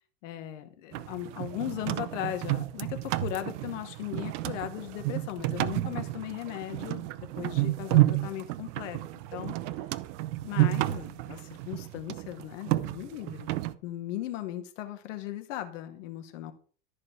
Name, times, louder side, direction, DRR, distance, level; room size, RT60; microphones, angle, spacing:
voice 1, 0.2-9.0 9.3-9.6 10.4-13.5 13.8-16.5, left 13 dB, 70° left, 8 dB, 2.0 m, -37 dB
sound 1, 0.9-13.7, right 17 dB, 60° right, 0.9 m, -31 dB
13.5 x 4.8 x 5.9 m, 0.42 s
hypercardioid pair, 90°, 39 cm